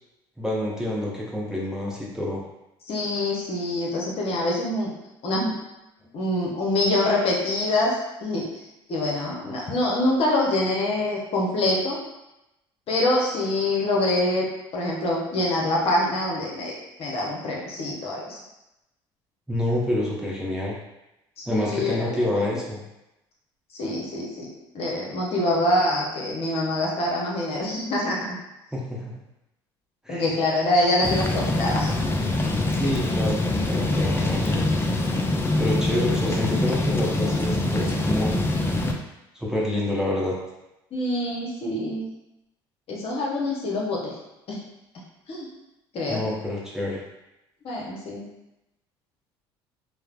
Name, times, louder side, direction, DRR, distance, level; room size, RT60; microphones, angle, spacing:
voice 1, 0.4-2.4 19.5-20.8 21.5-22.8 28.7-29.1 30.0-30.4 32.7-34.6 35.6-38.3 39.3-40.3 46.1-47.0, left 1 dB, 5° right, -5 dB, 0.8 m, -27 dB
voice 2, 2.9-4.9 5.2-5.5 6.1-7.9 8.2-8.5 8.9-12.0 12.9-14.5 14.7-18.4 21.4-22.3 23.8-24.5 24.7-28.4 30.1-31.9 40.9-42.1 42.9-44.1 44.5-44.6 45.3-45.5 45.9-46.2 47.6-48.2, left 1 dB, 50° left, -3 dB, 0.8 m, -25 dB
sound 1, 31.0-38.9, left 2 dB, 20° left, 0.4 m, -24 dB
3.1 x 2.0 x 2.4 m, 0.92 s
hypercardioid pair, 70°, 12 cm